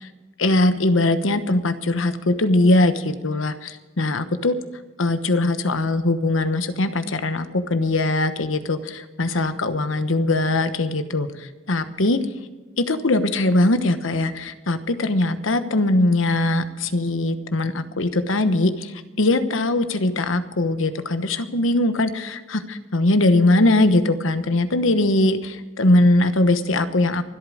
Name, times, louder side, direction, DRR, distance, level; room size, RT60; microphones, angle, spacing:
voice 1, 0.4-4.5 5.0-12.2 12.8-27.2, left 2 dB, 80° left, 10 dB, 1.1 m, -21 dB
24.5 x 8.6 x 5.0 m, 1.2 s
head